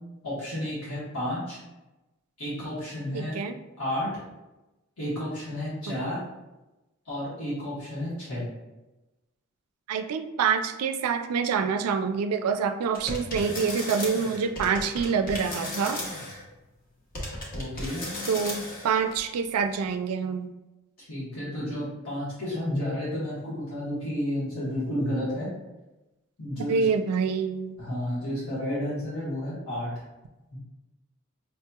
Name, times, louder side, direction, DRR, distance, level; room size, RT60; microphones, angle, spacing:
voice 1, 0.2-1.6 2.4-3.4 3.8-4.2 5.0-6.2 7.0-8.5 17.5-18.0 21.0-25.5 26.4-26.9 27.8-29.9 30.5-30.6, left 1 dB, 80° left, -10 dB, 1.3 m, -31 dB
voice 2, 3.1-3.6 5.9-6.0 9.9-16.2 18.3-20.5 26.6-27.8, right 6 dB, 85° right, 8 dB, 0.3 m, -26 dB
sound 1, 12.9-16.4 17.1-19.2, left 1 dB, 40° left, 0.8 m, -35 dB
5.2 x 2.8 x 2.3 m, 1.0 s
head